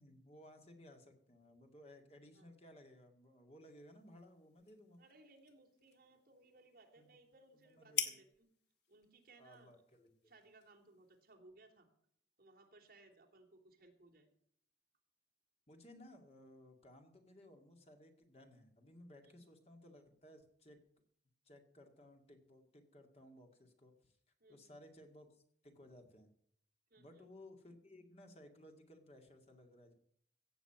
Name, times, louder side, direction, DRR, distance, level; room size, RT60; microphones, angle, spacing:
voice 1, 0.0-5.0 7.0-7.2 7.5-8.2 9.4-10.2 15.7-20.8 21.4-24.2 24.5-26.3 27.0-29.9, left 1 dB, 35° left, 4 dB, 2.2 m, -59 dB
sound 1, 3.6-11.4, left 8 dB, 70° left, 1.9 m, -48 dB
voice 2, 5.0-8.5 8.9-9.7 10.2-11.9 12.4-14.3 19.2-19.3 24.4-24.7 26.9-27.2, right 2 dB, 50° right, 2 dB, 3.1 m, -64 dB
16.5 x 7.0 x 8.0 m, 0.66 s
head